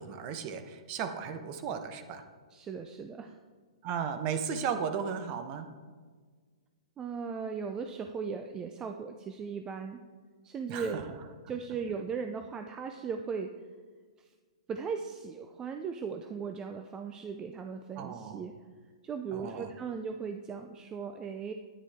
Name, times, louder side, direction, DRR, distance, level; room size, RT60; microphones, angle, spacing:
voice 1, 0.0-2.2 3.8-5.7 10.7-11.0 18.0-18.4 19.3-19.7, right 7 dB, 40° right, 8 dB, 1.0 m, -35 dB
voice 2, 2.5-3.4 7.0-10.0 10.4-11.1 11.5-13.5 14.2-14.3 14.7-18.5 19.0-21.5, right 5 dB, 20° right, 6 dB, 0.5 m, -37 dB
9.8 x 9.7 x 3.6 m, 1.5 s
hypercardioid pair, 120°, 3 cm